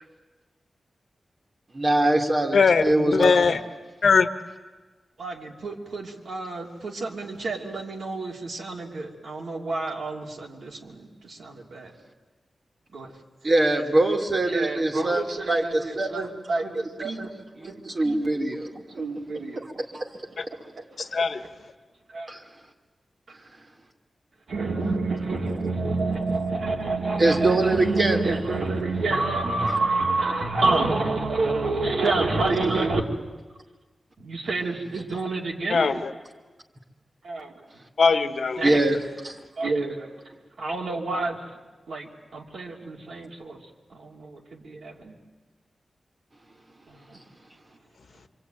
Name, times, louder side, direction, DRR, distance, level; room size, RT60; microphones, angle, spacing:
voice 1, 1.7-3.4 13.4-16.3 16.6-16.7 17.0-18.7 19.6-20.1 22.3-22.4 27.2-28.2 34.9-35.0 38.6-39.0 39.2-39.3, right 2 dB, 40° right, 2.5 m, -23 dB
voice 2, 2.5-3.6 4.0-4.3 20.4-20.5 21.0-21.4 35.7-36.1 38.0-38.8, left 5 dB, 70° left, 1.3 m, -21 dB
voice 3, 5.2-11.9 12.9-13.1 14.5-16.2 16.5-17.3 17.6-17.8 18.0-18.2 18.9-19.6 22.1-22.3 24.5-33.0 34.2-35.9 37.2-37.5 38.6-38.8 39.6-40.1 40.6-41.4 41.9-43.6 43.9-45.2, right 3 dB, 80° right, 3.1 m, -28 dB
26.5 x 24.5 x 9.2 m
wide cardioid pair, 110°, 0 cm